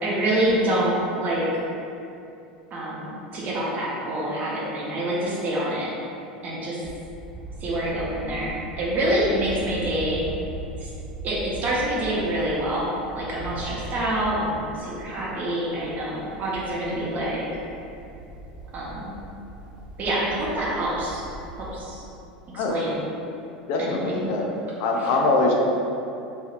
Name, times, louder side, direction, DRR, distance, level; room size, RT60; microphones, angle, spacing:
voice 1, 0.0-1.6 2.7-5.9 6.4-6.8 7.6-10.2 10.8-10.9 11.2-17.5 18.7-19.1 20.0-21.3 21.6-22.0 22.5-23.0 23.8-24.3 25.0-25.1, right 1 dB, 35° right, -6 dB, 0.8 m, -26 dB
sound 1, 6.8-21.7, right 2 dB, 15° right, 1.2 m, -40 dB
voice 2, 23.7-24.5 24.8-25.6, left 3 dB, 55° left, 0 dB, 0.4 m, -22 dB
3.2 x 2.7 x 2.4 m, 2.7 s
figure-of-eight pair, 80°, 5 cm